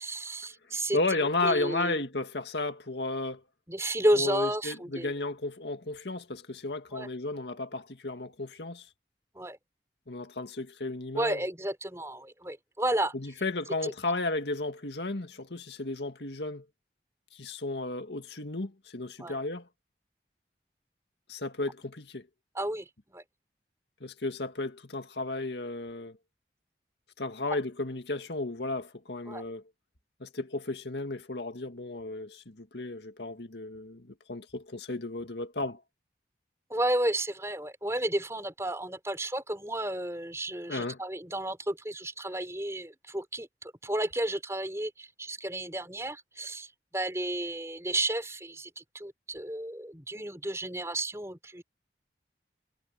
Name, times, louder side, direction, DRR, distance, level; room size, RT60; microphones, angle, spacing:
voice 1, 0.0-1.0 1.4-1.9 3.7-5.1 6.9-7.1 9.3-9.6 11.1-13.1 13.8-13.9 19.2-19.4 22.5-22.9 23.1-23.2 29.3-29.4 36.7-51.6, right 1 dB, 15° right, 4.6 m, -32 dB
voice 2, 0.9-3.4 4.1-8.9 10.1-11.4 13.1-16.6 17.3-19.6 21.3-22.3 24.0-26.2 27.2-29.6 30.2-35.8 40.7-41.0, left 2 dB, 80° left, 2.0 m, -34 dB
head